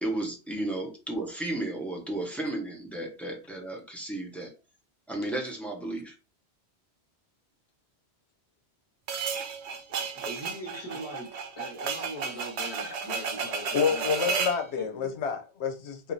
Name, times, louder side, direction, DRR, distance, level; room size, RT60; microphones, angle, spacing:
voice 1, 0.0-4.5 5.1-6.1, right 1 dB, ahead, 0.9 m, -33 dB
sound 1, 9.1-14.6, right 5 dB, 85° right, 0.9 m, -33 dB
voice 2, 9.9-11.3 11.5-14.4 14.8-15.1, equal, 25° left, 1.5 m, -41 dB
voice 3, 13.7-16.1, left 6 dB, 80° left, 1.0 m, -29 dB
4.9 x 2.6 x 2.7 m
omnidirectional pair, 1.1 m